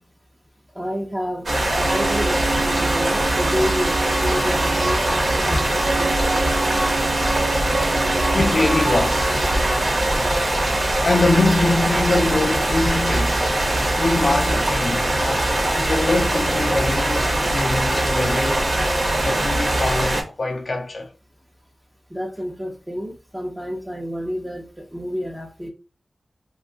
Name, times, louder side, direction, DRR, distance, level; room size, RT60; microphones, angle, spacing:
voice 1, 0.8-1.5 1.8-6.7 22.1-25.7, equal, 15° right, 0.8 m, -29 dB
sound 1, 1.5-20.2, right 1 dB, 60° right, 1.1 m, -21 dB
sound 2, 1.8-9.8, right 3 dB, 75° right, 0.3 m, -28 dB
voice 2, 8.3-9.4 11.0-13.5 14.0-18.7 19.2-21.1, left 2 dB, 60° left, 0.4 m, -23 dB
2.6 x 2.4 x 3.5 m
cardioid pair, 55°, 0 cm